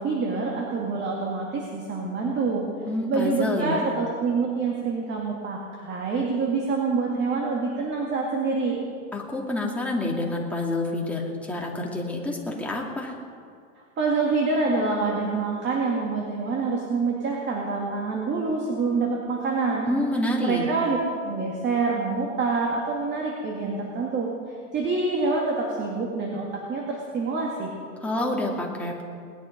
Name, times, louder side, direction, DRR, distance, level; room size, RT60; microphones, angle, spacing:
voice 1, 0.0-2.6 3.1-8.8 14.0-19.9 20.4-21.0 21.2-27.7, right 4 dB, 25° right, -1 dB, 2.4 m, -26 dB
voice 2, 2.9-3.9 9.1-13.1 19.9-20.6 28.0-29.0, left 1 dB, 5° left, -2 dB, 2.4 m, -28 dB
19.5 x 10.5 x 5.3 m, 2.2 s
hypercardioid pair, 115°, 41 cm